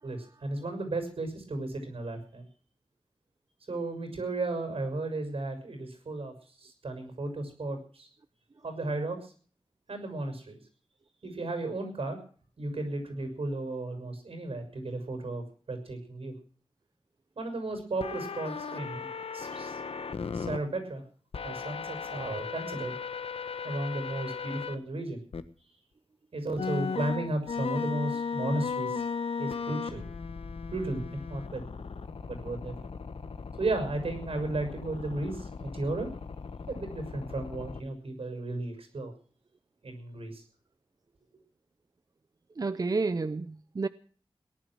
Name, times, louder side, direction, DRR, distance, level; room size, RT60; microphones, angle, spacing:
voice 1, 0.0-2.4 3.7-8.1 8.6-9.3 9.9-10.6 11.2-12.2 12.6-16.3 17.4-19.8 20.3-21.0 21.4-23.0 23.6-25.2 26.3-29.0 29.4-30.1 30.7-31.6 32.3-32.8 33.6-36.1 36.7-39.1 39.8-40.4, right 2 dB, 80° right, 6.2 m, -34 dB
sound 1, 18.0-20.6 21.3-24.8 25.3-25.4 26.6-37.8, left 5 dB, 85° left, 1.3 m, -36 dB
voice 2, 42.6-43.9, right 3 dB, 40° right, 0.7 m, -30 dB
18.5 x 11.0 x 6.2 m
wide cardioid pair, 95°, 10 cm